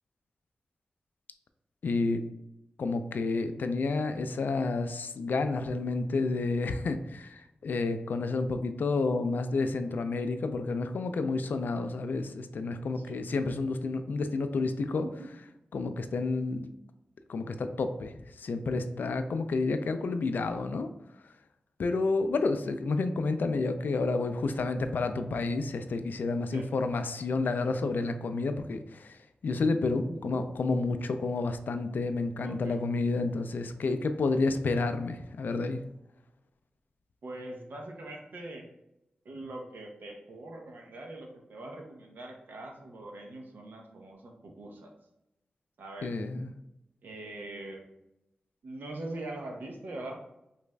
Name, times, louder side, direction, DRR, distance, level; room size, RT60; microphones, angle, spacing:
voice 1, 1.8-2.2 2.8-15.1 15.7-16.7 17.3-20.9 21.2-21.3 21.8-35.8 46.0-46.5, left 3 dB, 75° left, 9 dB, 0.3 m, -30 dB
voice 2, 30.1-30.8 32.4-32.8 37.2-38.7 39.2-44.9 45.8-46.1 47.0-47.9 48.6-50.2, right 2 dB, 80° right, 1 dB, 0.7 m, -42 dB
5.0 x 2.4 x 2.2 m, 0.87 s
wide cardioid pair, 70°, 3 cm